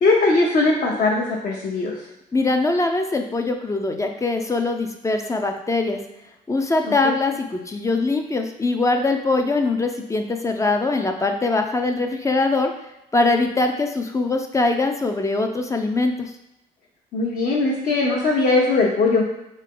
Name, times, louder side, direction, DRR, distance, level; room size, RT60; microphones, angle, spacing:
voice 1, 0.0-2.0 6.8-7.1 17.1-19.2, left 3 dB, 50° left, -3 dB, 0.9 m, -20 dB
voice 2, 2.3-6.0 6.5-12.7 13.1-16.3, left 3 dB, 20° left, 4 dB, 0.4 m, -22 dB
3.7 x 3.7 x 3.7 m, 0.91 s
cardioid pair, 110°, 17 cm